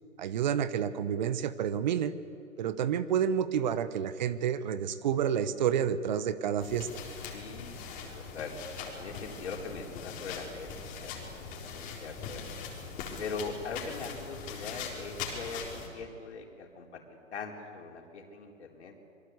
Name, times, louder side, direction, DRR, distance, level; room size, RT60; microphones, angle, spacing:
voice 1, 0.2-2.1 2.6-6.9, right 8 dB, 35° right, 14 dB, 1.0 m, -29 dB
sound 1, 6.6-15.9, left 5 dB, 20° left, 3.9 m, -41 dB
voice 2, 7.3-8.5 9.0-11.2 11.6-12.5 13.2-18.9, left 4 dB, 55° left, 1 dB, 4.2 m, -41 dB
26.5 x 23.0 x 8.1 m, 2.6 s
hypercardioid pair, 145°, 40 cm